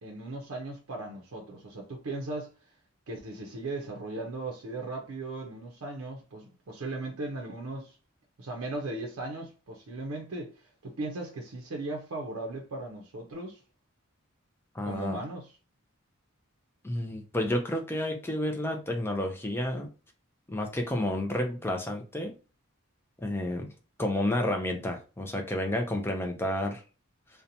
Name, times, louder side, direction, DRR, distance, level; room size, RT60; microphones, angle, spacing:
voice 1, 0.0-2.5 3.1-8.0 8.4-10.5 10.8-13.6 14.8-15.5, right 2 dB, 70° right, 0.5 m, -37 dB
voice 2, 14.7-15.2 16.8-19.9 20.5-22.3 23.2-23.7 24.0-26.8, left 1 dB, 10° left, 0.4 m, -30 dB
2.8 x 2.1 x 2.6 m
head